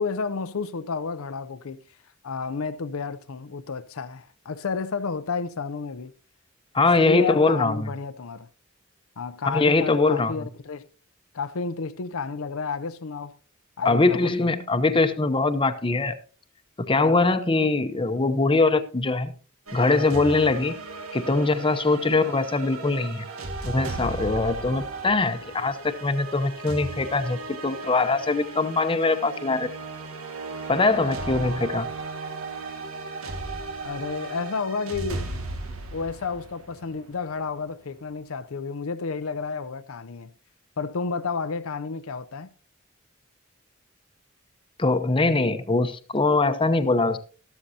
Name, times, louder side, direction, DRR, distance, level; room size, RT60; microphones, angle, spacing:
voice 1, 0.0-1.8 2.2-6.1 7.0-8.5 9.2-10.9 11.3-13.4 13.8-14.5 33.8-35.3 35.9-40.3 40.8-42.5, left 4 dB, 85° left, 0.6 m, -31 dB
voice 2, 6.7-7.9 9.4-10.5 13.8-16.1 16.8-19.3 19.7-20.7 21.1-23.2 23.7-29.7 30.7-31.9 44.8-47.2, left 3 dB, 25° left, 0.8 m, -22 dB
sound 1, 19.7-37.3, right 3 dB, 90° right, 1.9 m, -36 dB
13.5 x 12.5 x 2.8 m
head